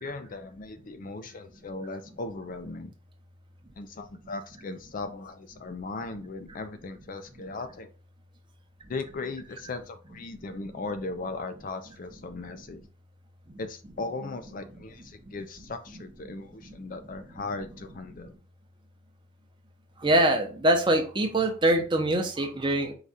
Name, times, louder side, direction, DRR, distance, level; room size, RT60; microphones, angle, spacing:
voice 1, 0.0-2.9 3.8-7.9 8.9-12.8 13.6-18.4, left 3 dB, 45° left, 9 dB, 0.4 m, -38 dB
voice 2, 20.0-22.9, right 1 dB, 25° right, 3 dB, 0.8 m, -23 dB
4.8 x 2.3 x 4.0 m, 0.37 s
head